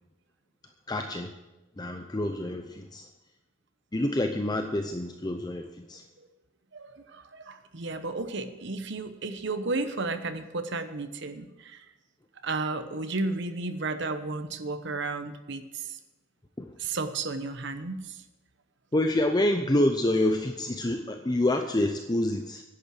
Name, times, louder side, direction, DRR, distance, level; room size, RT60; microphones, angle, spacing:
voice 1, 0.9-1.3 1.8-3.1 3.9-6.0 16.6-16.7 18.9-22.6, left 1 dB, 20° left, 5 dB, 0.6 m, -27 dB
voice 2, 6.7-11.8 12.4-16.0 16.8-18.2, right 3 dB, 60° right, 9 dB, 1.0 m, -33 dB
11.0 x 8.4 x 7.7 m, 1.1 s
head